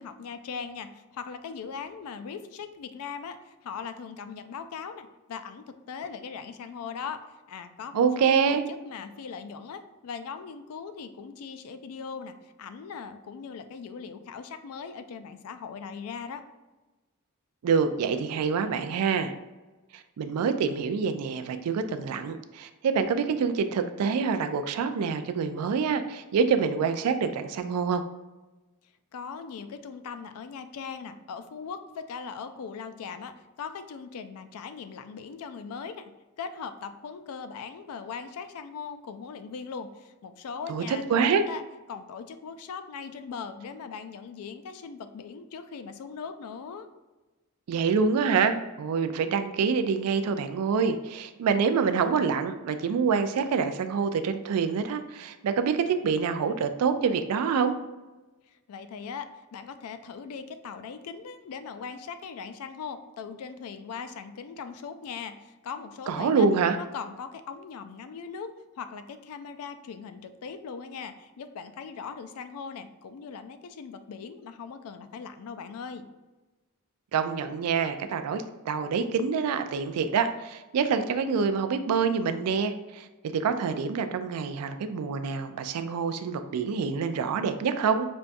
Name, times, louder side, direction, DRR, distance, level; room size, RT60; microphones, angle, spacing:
voice 1, 0.0-7.2 7.5-16.4 29.1-36.1 36.4-41.6 41.9-46.9 58.5-66.5 66.8-68.5 68.8-76.1, left 6 dB, 75° left, 10 dB, 0.3 m, -40 dB
voice 2, 7.9-8.6 17.6-19.3 19.9-28.0 40.7-41.4 47.7-57.7 66.1-66.8 77.1-83.1 83.3-88.1, right 5 dB, 85° right, 9 dB, 0.3 m, -26 dB
5.2 x 2.3 x 2.5 m, 1.1 s
head